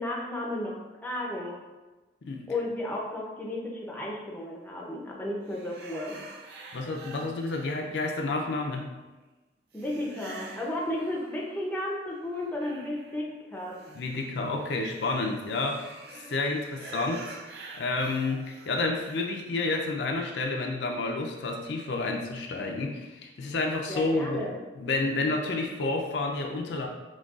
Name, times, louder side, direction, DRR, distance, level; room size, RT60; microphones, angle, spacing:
voice 1, 0.0-1.6 2.5-6.2 9.7-13.8 23.9-24.6, left 1 dB, 10° left, -3 dB, 0.5 m, -33 dB
sound 1, 5.5-8.6 9.7-11.7 12.1-20.6, right 3 dB, 55° right, 0.4 m, -48 dB
voice 2, 6.7-8.9 13.9-17.4 17.7-24.5 24.8-26.9, left 3 dB, 70° left, 2 dB, 0.4 m, -30 dB
6.1 x 2.3 x 2.4 m, 1.2 s
head